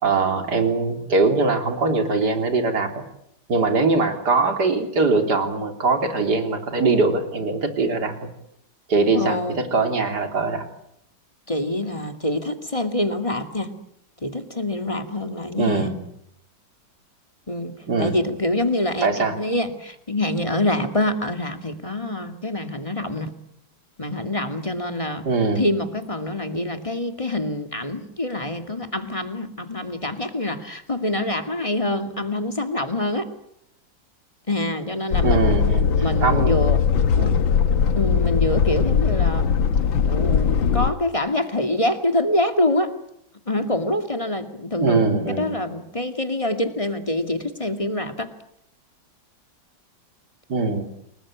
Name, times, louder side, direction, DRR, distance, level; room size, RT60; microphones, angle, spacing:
voice 1, 0.0-3.0 3.5-8.3 8.9-10.7 15.6-16.0 17.9-18.2 19.0-19.4 25.2-25.6 35.2-36.6 37.2-37.4 44.8-45.5 50.5-50.8, right 3 dB, 60° right, 6 dB, 3.8 m, -22 dB
voice 2, 9.1-9.6 11.5-13.7 14.2-15.9 17.5-23.3 24.0-25.2 25.6-33.3 34.5-35.6 36.0-36.8 38.0-39.5 40.0-42.9 43.5-48.3, left 1 dB, 15° left, 7 dB, 2.2 m, -25 dB
sound 1, 35.1-40.9, left 7 dB, 85° left, 2.0 m, -20 dB
29.0 x 20.5 x 8.7 m, 0.75 s
omnidirectional pair, 2.1 m